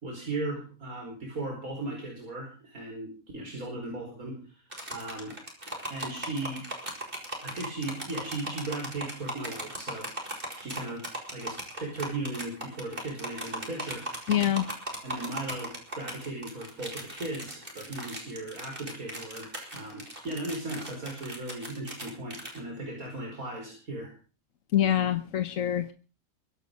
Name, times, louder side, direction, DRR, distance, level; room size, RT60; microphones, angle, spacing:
voice 1, 0.0-4.6 4.9-5.3 5.7-6.6 7.4-10.1 10.6-14.0 14.6-14.7 15.0-24.1, right 2 dB, 85° right, 5.1 m, -37 dB
sound 1, 4.7-22.6, right 1 dB, 40° right, 6.3 m, -38 dB
voice 2, 14.3-14.7 24.7-25.9, left 11 dB, 70° left, 1.3 m, -25 dB
23.5 x 11.0 x 5.3 m
omnidirectional pair, 1.5 m